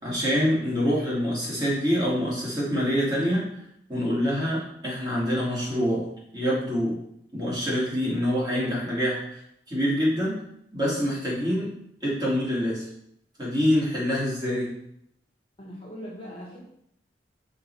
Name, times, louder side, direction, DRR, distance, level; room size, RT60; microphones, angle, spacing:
voice 1, 0.0-3.4 3.9-6.0 6.3-7.0 7.3-9.4 9.7-10.4 10.7-11.7 12.0-12.9 13.4-14.7, equal, 20° right, -6 dB, 2.4 m, -25 dB
voice 2, 15.6-16.6, equal, 30° left, -3 dB, 1.5 m, -40 dB
5.8 x 4.8 x 4.6 m, 0.75 s
head